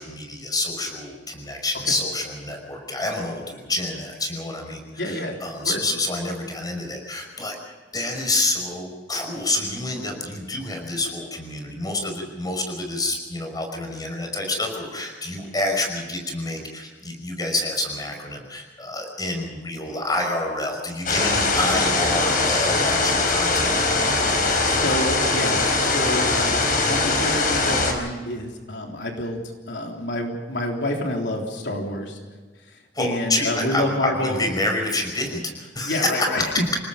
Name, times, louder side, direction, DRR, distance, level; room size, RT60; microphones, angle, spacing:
voice 1, 0.0-7.6 7.9-23.8 32.9-36.5, left 2 dB, 20° left, 3 dB, 5.5 m, -28 dB
voice 2, 5.0-5.4 5.6-5.8 24.6-29.4 29.7-32.2 32.7-34.5 35.8-36.6, left 1 dB, 80° left, 1 dB, 3.6 m, -28 dB
sound 1, 21.1-27.9, left 3 dB, 50° left, 4.8 m, -21 dB
28.5 x 18.5 x 5.2 m, 1.4 s
head